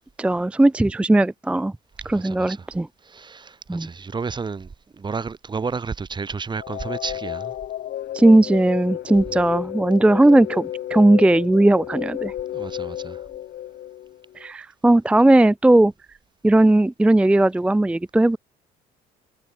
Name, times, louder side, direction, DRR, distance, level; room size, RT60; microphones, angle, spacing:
voice 1, 0.2-1.7 2.1-2.9 3.7-3.9 8.1-12.3 14.4-15.9 16.4-18.4, right 1 dB, 5° right, 0.4 m, -17 dB
voice 2, 2.1-2.7 3.0-7.5 12.5-13.2, right 5 dB, 25° right, 4.3 m, -32 dB
sound 1, 6.5-14.5, left 12 dB, 65° left, 5.1 m, -32 dB
cardioid pair, 110°, 17 cm